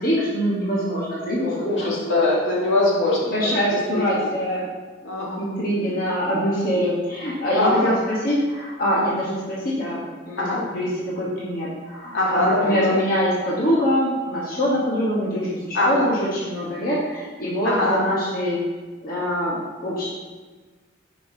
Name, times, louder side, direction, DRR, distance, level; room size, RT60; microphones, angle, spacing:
voice 1, 0.0-1.5 1.8-2.3 2.6-2.7 3.3-4.6 5.4-18.6 19.0-20.1, equal, 50° left, -7 dB, 1.1 m, -24 dB
voice 2, 1.4-3.3 5.0-5.4 7.5-8.0 10.4-10.6 12.1-12.7 15.7-16.1 17.6-18.1, left 2 dB, 75° left, -5 dB, 1.7 m, -22 dB
7.5 x 5.3 x 2.7 m, 1.4 s
head